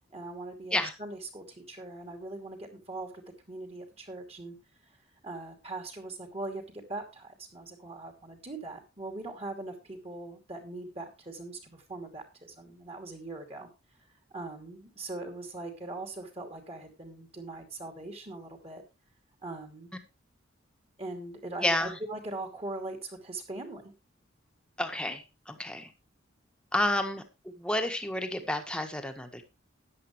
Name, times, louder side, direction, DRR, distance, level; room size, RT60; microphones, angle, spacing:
voice 1, 0.1-4.6 5.2-13.7 14.3-18.8 19.4-19.9 21.0-23.8, right 2 dB, 30° right, 5 dB, 2.7 m, -41 dB
voice 2, 21.6-22.0 24.8-25.2 25.5-25.9 26.7-27.2 27.6-29.4, left 1 dB, 5° left, 6 dB, 1.5 m, -30 dB
13.5 x 10.0 x 3.2 m, 0.26 s
head